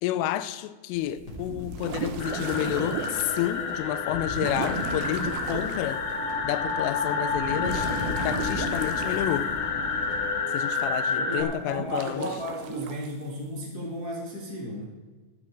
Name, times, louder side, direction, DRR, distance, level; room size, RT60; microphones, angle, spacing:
voice 1, 0.0-6.0 6.4-7.9 8.2-9.5 10.5-12.3, left 13 dB, 85° left, 3.1 m, -30 dB
sound 1, 0.9-3.5 4.3-5.9 7.3-9.7 11.7-13.1, right 7 dB, 85° right, 2.1 m, -36 dB
sound 2, 1.2-10.3, left 2 dB, 25° left, 3.6 m, -37 dB
sound 3, 2.2-11.4, left 4 dB, 70° left, 2.1 m, -29 dB
voice 2, 11.2-14.9, equal, 50° left, 1.1 m, -34 dB
13.5 x 12.5 x 4.5 m
omnidirectional pair, 5.7 m